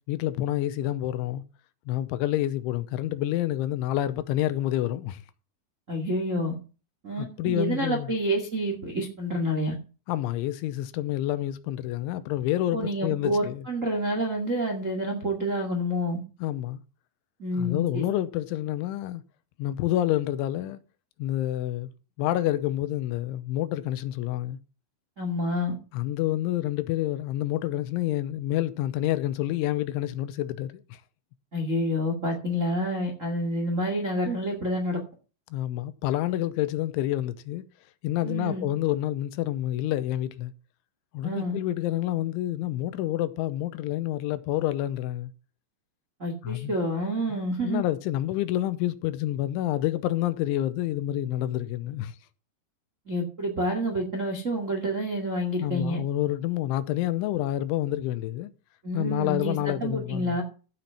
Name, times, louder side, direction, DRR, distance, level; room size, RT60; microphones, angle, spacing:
voice 1, 0.1-1.4 1.9-5.2 7.2-8.1 10.1-13.6 16.4-16.8 17.5-19.2 19.6-20.8 21.2-21.9 22.2-24.6 25.9-31.0 35.5-37.6 38.0-40.5 41.1-45.3 46.4-46.7 47.3-52.2 55.6-58.5 58.9-60.4, left 14 dB, 85° left, 3.1 m, -28 dB
voice 2, 5.9-6.5 7.0-9.8 12.7-16.2 17.4-18.0 25.2-25.7 31.5-35.0 38.2-38.7 41.2-41.6 46.2-47.8 53.0-56.0 58.8-60.4, equal, 50° right, 0.9 m, -28 dB
15.0 x 6.0 x 5.6 m
omnidirectional pair, 5.5 m